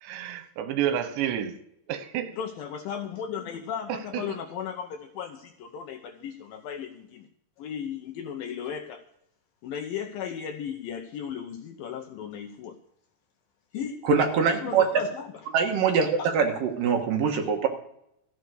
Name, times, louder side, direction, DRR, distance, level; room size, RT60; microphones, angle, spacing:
voice 1, 0.0-1.6 1.9-2.3 3.9-4.4, right 10 dB, 85° right, 8 dB, 3.5 m, -30 dB
voice 2, 2.4-7.0 7.6-9.0 9.6-12.7 13.7-14.0 14.6-15.1 16.2-16.3, left 8 dB, 75° left, 5 dB, 2.2 m, -35 dB
voice 3, 14.0-14.9 15.5-16.1 16.3-17.7, right 6 dB, 65° right, 3 dB, 2.7 m, -23 dB
14.5 x 9.6 x 6.5 m, 0.75 s
omnidirectional pair, 5.0 m